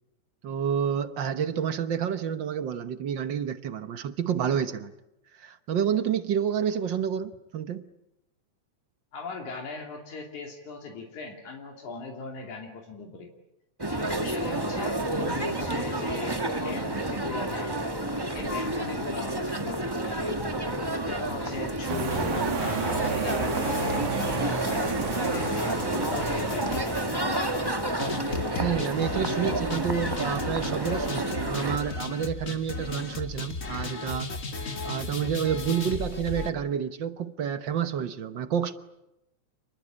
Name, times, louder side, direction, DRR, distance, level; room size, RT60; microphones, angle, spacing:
voice 1, 0.4-4.9 5.4-7.9 28.6-34.3 34.8-38.7, right 8 dB, 60° right, 1.2 m, -29 dB
voice 2, 9.1-13.3 14.0-17.9 18.3-20.5 21.0-25.5 25.9-27.1, left 4 dB, 80° left, 4.4 m, -39 dB
sound 1, 13.8-31.8, right 1 dB, 15° right, 0.9 m, -30 dB
sound 2, 21.9-27.4, right 6 dB, 80° right, 3.5 m, -32 dB
sound 3, 22.1-36.5, left 3 dB, 35° left, 1.2 m, -36 dB
29.5 x 20.5 x 8.8 m
omnidirectional pair, 3.4 m